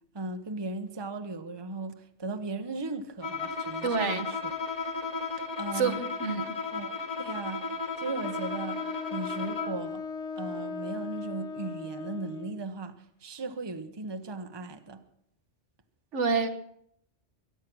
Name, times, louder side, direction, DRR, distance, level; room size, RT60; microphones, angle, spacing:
voice 1, 0.1-4.5 5.6-6.0 6.3-7.7 8.0-10.1 10.4-15.0, right 3 dB, 25° right, 1.0 m, -37 dB
Bowed string instrument, 3.2-9.9, left 4 dB, 40° left, 2.0 m, -35 dB
voice 2, 3.8-4.3 5.7-6.5 16.1-16.5, right 5 dB, 80° right, 1.7 m, -28 dB
Wind instrument woodwind instrument, 8.2-12.6, left 4 dB, 75° left, 1.7 m, -38 dB
23.5 x 9.4 x 6.2 m
omnidirectional pair, 1.2 m